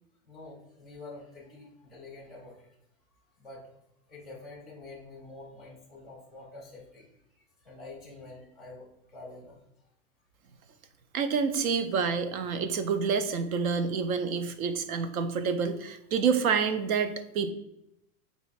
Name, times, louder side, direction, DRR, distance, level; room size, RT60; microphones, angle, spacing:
voice 1, 0.2-2.7 3.4-3.8 4.1-7.1 7.3-9.6, left 2 dB, ahead, -5 dB, 0.3 m, -47 dB
voice 2, 11.1-17.5, right 5 dB, 70° right, 10 dB, 0.7 m, -28 dB
4.6 x 2.5 x 4.0 m, 0.80 s
supercardioid pair, 155°, 43 cm